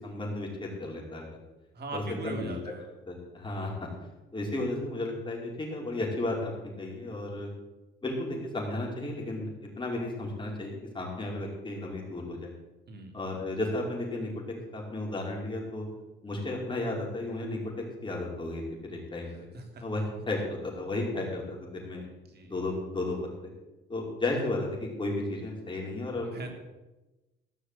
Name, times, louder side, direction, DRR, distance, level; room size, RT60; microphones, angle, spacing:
voice 1, 0.0-1.2 1.9-2.6 3.1-3.7 4.3-7.5 8.0-9.5 9.8-12.5 13.1-14.3 14.7-15.9 16.2-17.6 18.0-19.5 19.8-22.0 22.4-23.2 23.9-26.5, left 2 dB, 25° left, -2 dB, 5.2 m, -33 dB
voice 2, 1.7-2.9 12.9-13.1 19.5-19.8 22.3-22.6 26.2-26.5, right 3 dB, 55° right, 3 dB, 3.1 m, -40 dB
15.5 x 6.5 x 8.4 m, 1.1 s
cardioid pair, 90°, 20 cm